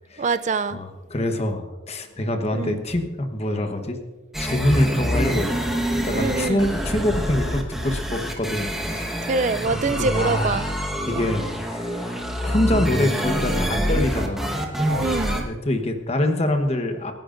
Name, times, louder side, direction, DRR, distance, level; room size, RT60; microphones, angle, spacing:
voice 1, 0.2-0.8 2.5-2.8 6.1-6.7 9.2-10.7 14.9-15.5, right 4 dB, 35° right, 12 dB, 0.4 m, -24 dB
voice 2, 0.7-4.0 4.4-5.6 6.0-9.3 9.7-10.7 11.1-12.1 12.4-14.7 15.4-17.1, left 1 dB, 30° left, 5 dB, 1.1 m, -25 dB
sound 1, 4.3-15.4, equal, ahead, 1.3 m, -26 dB
27.5 x 11.0 x 2.6 m, 1.3 s
head